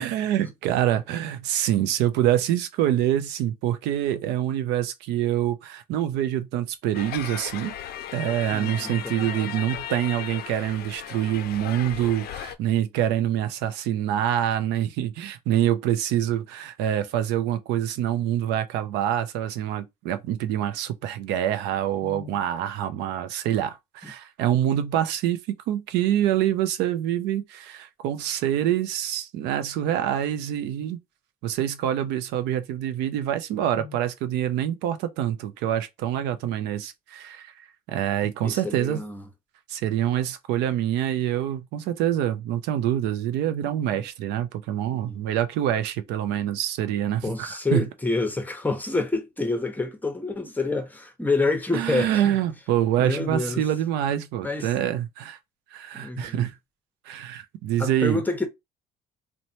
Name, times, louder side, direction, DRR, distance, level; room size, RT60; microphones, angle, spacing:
voice 1, 0.0-7.7 8.1-31.0 31.4-37.5 37.9-39.0 39.7-47.8 51.7-55.4 55.7-56.5 57.1-58.2, right 11 dB, 90° right, 0.5 m, -26 dB
sound 1, 6.9-12.5, left 10 dB, 65° left, 0.4 m, -36 dB
voice 2, 8.5-9.3 22.0-22.4 24.0-24.1 33.8-33.9 38.4-39.2 43.7-44.0 44.9-45.2 47.2-52.4 53.0-53.6 54.4-54.7 55.9-56.5 57.8-58.5, left 3 dB, 10° left, 0.7 m, -28 dB
3.0 x 2.1 x 2.7 m
cardioid pair, 110°, 17 cm